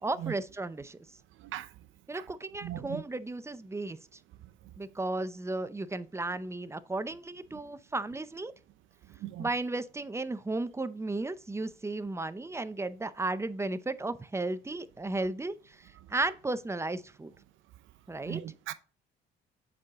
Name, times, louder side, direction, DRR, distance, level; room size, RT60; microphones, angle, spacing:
voice 1, 0.0-1.0 2.1-4.0 4.8-8.5 9.4-17.3 18.1-18.4, right 2 dB, 15° right, 0.6 m, -34 dB
voice 2, 1.4-1.7 2.1-2.2 2.6-3.0 9.2-9.5 18.2-18.7, right 12 dB, 85° right, 0.6 m, -38 dB
7.4 x 4.6 x 3.5 m
cardioid pair, 90°, 20 cm